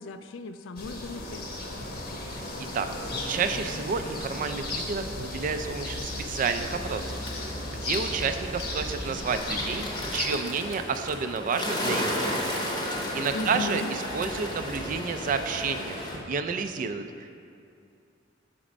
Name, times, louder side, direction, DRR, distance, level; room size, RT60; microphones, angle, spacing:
voice 1, 0.0-1.5 13.3-13.9, left 3 dB, 85° left, 9 dB, 0.4 m, -35 dB
sound 1, 0.8-10.2, left 2 dB, 55° left, 0.8 m, -35 dB
voice 2, 3.3-12.6 13.1-16.0 16.3-17.4, right 5 dB, 45° right, 8 dB, 0.3 m, -30 dB
Bird, 6.7-16.2, left 1 dB, 25° left, 0.8 m, -34 dB
6.1 x 4.2 x 5.0 m, 2.4 s
head